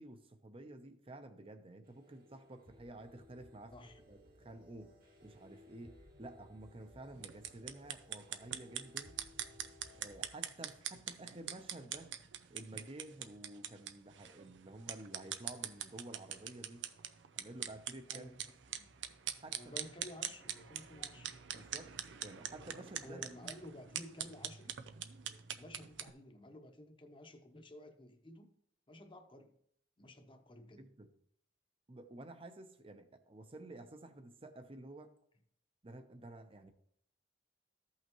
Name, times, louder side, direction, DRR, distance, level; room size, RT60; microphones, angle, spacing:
voice 1, 0.0-3.8 4.1-5.0 5.2-9.2 10.0-12.1 12.5-16.8 17.4-18.3 19.4-19.9 21.5-22.0 22.2-23.5 30.8-31.1 31.9-35.2 35.8-36.7, right 2 dB, 30° right, 0.8 m, -51 dB
sound 1, 1.8-10.3, left 1 dB, 55° right, 1.8 m, -61 dB
sound 2, 7.1-26.1, right 10 dB, 90° right, 0.6 m, -44 dB
voice 2, 8.2-8.6 18.1-18.4 18.7-18.9 19.5-21.4 23.0-24.7 25.6-28.5 28.9-29.6 30.0-30.8, left 1 dB, 30° left, 0.9 m, -53 dB
14.0 x 5.7 x 3.1 m
head